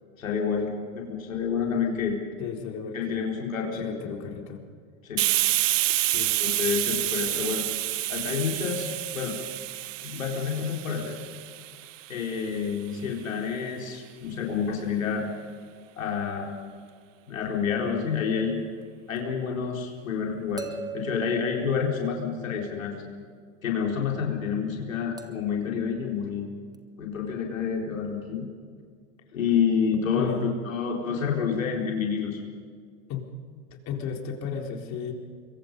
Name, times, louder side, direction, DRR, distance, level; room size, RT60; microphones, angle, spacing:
voice 1, 0.2-2.2 2.9-3.9 5.0-5.3 6.4-7.7 8.1-9.4 10.0-11.2 12.1-15.2 16.0-16.5 17.3-18.6 19.1-20.7 20.9-23.0 23.6-26.5 27.0-28.5 29.3-32.4, left 6 dB, 85° left, -1 dB, 4.4 m, -28 dB
voice 2, 2.4-3.3 3.7-4.6 6.1-6.4 30.1-30.5 33.1-33.2 33.7-35.1, left 6 dB, 45° left, 3 dB, 4.0 m, -34 dB
Hiss, 5.2-12.6, right 16 dB, 70° right, 0.8 m, -28 dB
sound 1, 19.2-19.3 20.6-22.6 25.2-25.6 26.7-26.8, right 5 dB, 10° right, 1.6 m, -40 dB
26.0 x 23.0 x 5.4 m, 2.1 s
hypercardioid pair, 95°, 39 cm